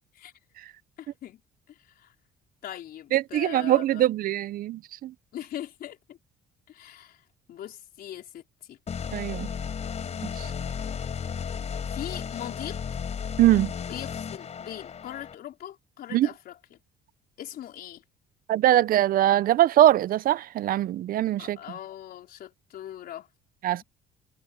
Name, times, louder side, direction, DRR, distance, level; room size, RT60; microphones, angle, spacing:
voice 1, 1.0-1.4 1.7-2.1 2.6-4.0 5.3-6.2 6.7-7.2 7.5-8.4 8.7-8.8 11.9-13.0 13.8-16.8 17.4-18.0 21.4-23.3, left 11 dB, 65° left, 4.7 m, -40 dB
voice 2, 3.1-5.1 9.1-9.5 13.4-13.7 16.1-16.3 18.5-21.6 23.6-23.8, right 13 dB, 60° right, 0.6 m, -22 dB
sound 1, 8.9-15.3, left 7 dB, 40° left, 5.0 m, -34 dB
cardioid pair, 110°, 17 cm